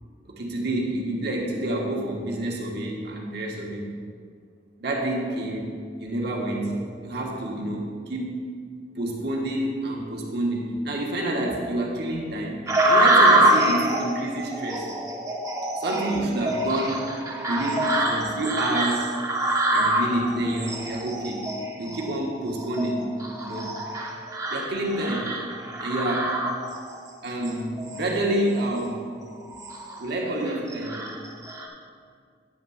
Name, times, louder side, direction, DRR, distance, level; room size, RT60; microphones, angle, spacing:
voice 1, 0.3-3.9 4.8-8.5 8.9-14.9 15.8-17.1 17.4-19.1 19.7-21.5 21.8-23.1 23.4-23.8 24.5-25.4 25.8-26.5 27.2-29.1 30.0-31.1, right 1 dB, 60° right, -1 dB, 1.4 m, -28 dB
sound 1, 12.7-27.0 27.4-28.1 28.6-28.8 29.3-30.0 30.4-31.7, right 1 dB, 20° right, 0.8 m, -25 dB
9.4 x 3.7 x 7.0 m, 2.2 s
head